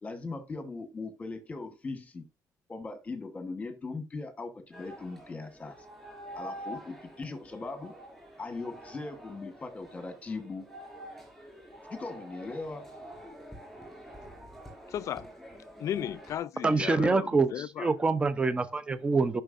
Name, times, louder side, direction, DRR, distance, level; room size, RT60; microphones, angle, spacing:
voice 1, 0.0-2.2 2.7-5.7 6.3-7.9 8.4-10.7 11.9-12.9, left 3 dB, 20° left, 1.3 m, -39 dB
sound 1, 4.7-16.4, right 1 dB, ahead, 5.2 m, -47 dB
voice 2, 14.9-15.3 15.8-17.9, left 10 dB, 50° left, 0.4 m, -35 dB
voice 3, 16.6-17.5 17.8-19.4, right 3 dB, 15° right, 0.6 m, -25 dB
12.5 x 5.7 x 2.6 m
cardioid pair, 160°, 7 cm